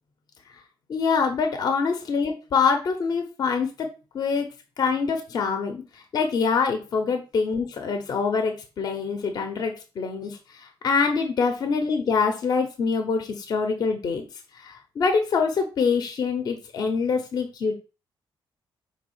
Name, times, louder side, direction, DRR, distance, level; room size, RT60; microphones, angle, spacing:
voice 1, 0.9-3.9 4.1-4.5 4.8-5.8 6.1-14.3 14.5-17.7, left 5 dB, 50° left, 6 dB, 1.0 m, -25 dB
5.2 x 3.7 x 5.6 m, 0.32 s
wide cardioid pair, 170°, 9 cm